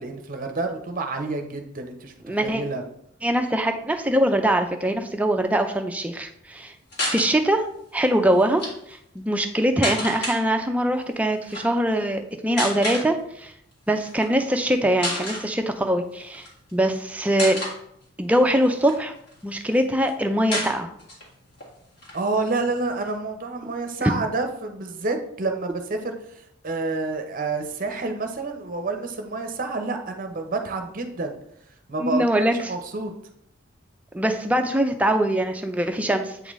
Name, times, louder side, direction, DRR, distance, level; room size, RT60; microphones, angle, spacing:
voice 1, 0.0-2.1 2.4-2.8 22.1-31.4 31.9-33.1, right 3 dB, 45° right, 5 dB, 0.7 m, -29 dB
voice 2, 2.2-2.6 3.2-6.7 7.1-7.6 7.9-8.6 8.9-13.5 13.9-16.5 16.7-17.6 18.2-19.1 19.4-20.9 32.0-32.6 34.1-36.5, right 1 dB, 5° right, 5 dB, 0.4 m, -22 dB
sound 1, 6.9-7.3 8.4-8.7 9.8-10.4 11.4-11.6 12.6-13.1 14.1-14.3 14.7-14.8 15.0-15.4 16.3-17.0 17.4-17.8 18.4-19.4 19.7-19.8 20.0-20.1 20.5-21.3 21.6-21.7 22.0-23.1, left 1 dB, 55° left, 1.8 m, -29 dB
7.9 x 3.8 x 3.1 m, 0.73 s
head